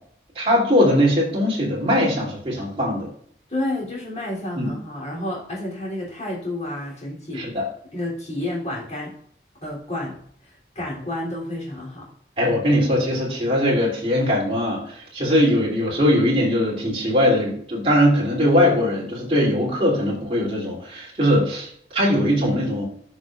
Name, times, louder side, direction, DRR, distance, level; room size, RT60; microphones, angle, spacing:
voice 1, 0.3-3.1 4.6-4.7 7.3-7.6 12.4-22.9, equal, 30° right, -3 dB, 2.8 m, -20 dB
voice 2, 3.5-7.5 7.9-9.1 9.6-10.2 10.7-12.1, left 1 dB, 40° left, -3 dB, 3.1 m, -30 dB
13.0 x 6.2 x 2.4 m, 0.63 s
head